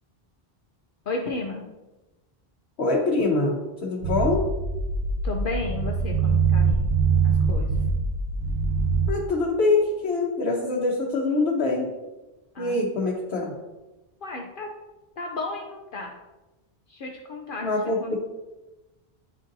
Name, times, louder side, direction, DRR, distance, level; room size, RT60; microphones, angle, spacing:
voice 1, 1.1-1.7 5.2-6.9 7.2-7.7 12.5-12.8 14.2-14.7 15.2-16.2 16.9-17.7 18.0-18.1, left 3 dB, 60° left, 1 dB, 0.8 m, -33 dB
voice 2, 2.8-4.5 9.1-11.9 12.6-13.5 17.6-18.2, left 3 dB, 85° left, -3 dB, 1.1 m, -24 dB
sound 1, 4.0-9.1, right 5 dB, 80° right, 0.8 m, -23 dB
9.5 x 3.8 x 2.6 m, 1.1 s
omnidirectional pair, 1.0 m